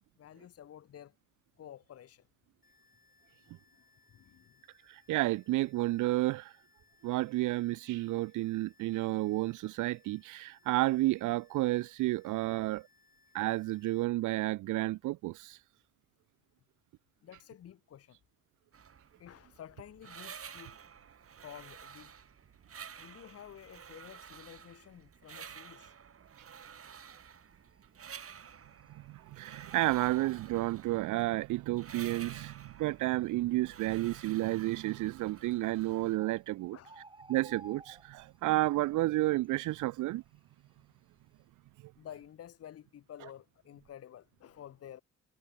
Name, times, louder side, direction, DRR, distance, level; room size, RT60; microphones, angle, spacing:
voice 1, 0.2-1.1 1.6-2.3 4.1-4.6 17.2-18.2 19.2-20.8 21.4-22.1 23.0-25.9 36.7-37.1 42.0-45.0, left 10 dB, 55° left, 1.0 m, -51 dB
sound 1, 2.6-14.0, left 4 dB, 25° left, 5.3 m, -68 dB
voice 2, 4.9-6.5 7.0-12.9 13.3-15.6 28.9-36.8 37.3-40.2, right 18 dB, 80° right, 0.6 m, -31 dB
sound 2, 18.7-36.2, right 7 dB, 50° right, 5.0 m, -51 dB
Bird, 26.9-27.4 27.7-27.8 28.1-29.3 29.5-31.4 32.2-32.3 32.9-33.0 33.2-33.3 34.0-34.4 35.4-35.5 35.9-36.0 36.2-38.5 38.8-39.1 39.4-40.8 41.2-41.4, right 3 dB, 15° right, 1.7 m, -52 dB
cardioid pair, 90°, 30 cm